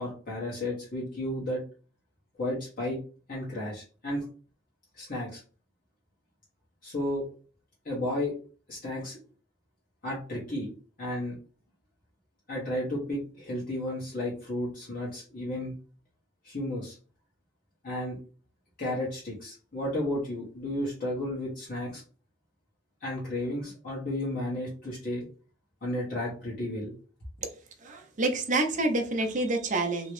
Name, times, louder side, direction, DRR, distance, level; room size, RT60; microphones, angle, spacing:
voice 1, 0.0-1.6 2.4-3.0 3.3-4.2 5.0-5.4 6.8-7.2 7.8-8.3 8.7-9.2 10.0-10.7 11.0-11.3 12.5-15.7 16.4-17.0 17.8-18.2 18.8-22.0 23.0-25.2 25.8-26.9, left 1 dB, 45° left, -6 dB, 1.2 m, -33 dB
voice 2, 27.8-30.1, right 2 dB, 40° right, 3 dB, 0.7 m, -28 dB
3.1 x 2.9 x 3.1 m, 0.39 s
head